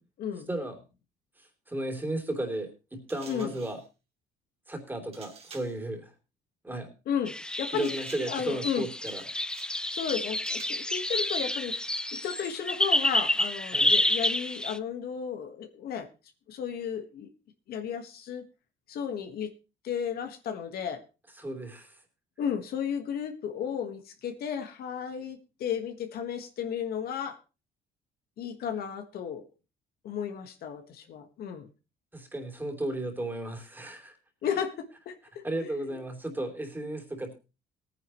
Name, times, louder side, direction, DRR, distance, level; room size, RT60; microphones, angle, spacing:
voice 1, 0.2-0.5 3.3-3.5 7.1-7.9 8.3-8.9 9.9-11.7 12.1-16.1 16.5-17.3 17.7-18.4 18.9-19.5 19.8-21.0 22.4-27.4 28.4-29.4 30.0-31.7 34.4-36.0, left 8 dB, 65° left, 7 dB, 1.6 m, -34 dB
voice 2, 1.4-3.8 4.7-6.1 6.6-6.9 7.7-9.2 13.7-13.9 21.4-21.9 32.1-34.2 35.4-37.3, right 1 dB, 10° right, 4 dB, 3.2 m, -34 dB
sound 1, 3.1-3.9 5.1-5.8 7.8-8.5 9.1-9.8 10.1-10.9, right 5 dB, 35° right, 2.5 m, -50 dB
sound 2, 7.3-14.8, left 1 dB, 5° left, 0.5 m, -29 dB
18.0 x 9.9 x 3.1 m, 0.30 s
cardioid pair, 110°, 17 cm